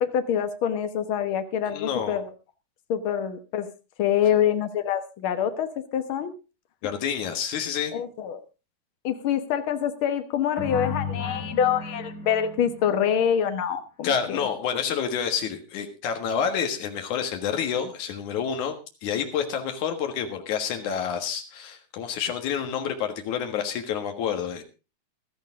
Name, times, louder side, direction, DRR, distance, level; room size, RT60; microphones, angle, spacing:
voice 1, 0.0-2.3 2.9-3.7 4.0-6.3 7.9-8.4 9.0-14.5, left 9 dB, 55° left, 8 dB, 1.8 m, -25 dB
voice 2, 1.7-2.2 6.8-7.9 14.0-18.7 19.0-24.6, left 7 dB, 80° left, 5 dB, 3.0 m, -28 dB
sound 1, 10.6-13.4, left 4 dB, 35° left, 4.6 m, -34 dB
15.5 x 13.5 x 3.7 m, 0.31 s
omnidirectional pair, 3.4 m